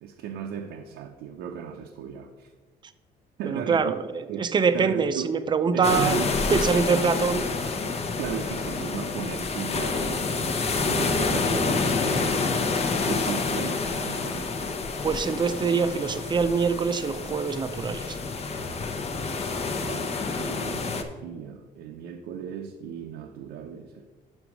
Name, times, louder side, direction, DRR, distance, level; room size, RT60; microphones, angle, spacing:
voice 1, 0.0-2.5 3.4-3.9 4.3-5.3 5.7-6.9 7.3-7.4 7.8-10.4 10.8-12.8 13.0-14.6 19.7-24.1, right 8 dB, 85° right, 0.6 m, -36 dB
voice 2, 3.5-6.2 6.5-7.4 15.0-18.2, right 5 dB, 25° right, 0.5 m, -24 dB
sound 1, 5.8-21.0, left 4 dB, 40° left, 0.8 m, -28 dB
6.1 x 5.2 x 6.0 m
cardioid pair, 110°, 17 cm